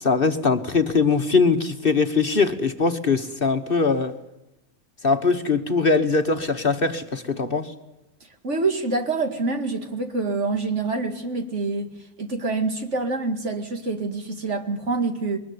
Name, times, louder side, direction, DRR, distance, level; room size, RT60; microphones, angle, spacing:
voice 1, 0.0-4.1 5.0-7.7, left 4 dB, 40° left, 1.4 m, -21 dB
voice 2, 8.4-11.9 12.2-15.4, right 3 dB, 55° right, 2.6 m, -26 dB
22.0 x 20.5 x 9.7 m
omnidirectional pair, 1.5 m